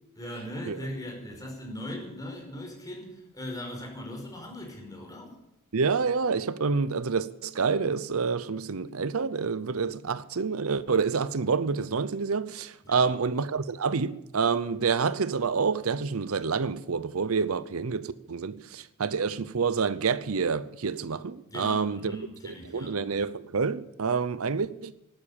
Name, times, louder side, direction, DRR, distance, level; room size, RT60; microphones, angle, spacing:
voice 1, 0.1-5.4 12.8-13.2 21.5-23.0, left 1 dB, 15° left, 5.0 m, -39 dB
voice 2, 5.7-22.2 22.7-24.9, right 5 dB, 75° right, 0.7 m, -28 dB
14.0 x 12.0 x 8.7 m
head